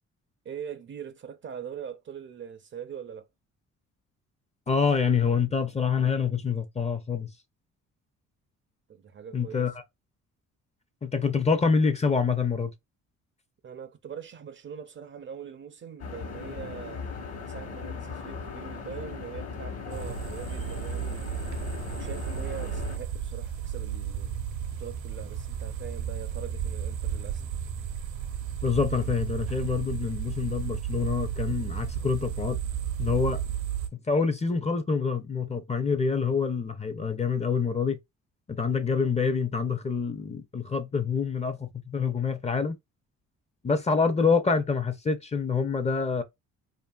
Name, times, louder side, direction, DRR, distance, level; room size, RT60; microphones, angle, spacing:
voice 1, 0.4-3.3 8.9-9.7 13.6-17.0 17.4-21.4 22.0-24.3 24.7-27.4, right 7 dB, 40° right, 0.5 m, -42 dB
voice 2, 4.7-7.3 9.3-9.8 11.0-12.7 28.6-32.6 33.0-33.4 34.1-38.0 38.5-42.8 43.6-46.2, left 5 dB, 20° left, 0.5 m, -26 dB
sound 1, 16.0-23.0, left 5 dB, 55° left, 1.1 m, -38 dB
sound 2, 19.9-33.9, right 9 dB, 80° right, 0.8 m, -33 dB
2.7 x 2.6 x 2.3 m
cardioid pair, 90°, 30 cm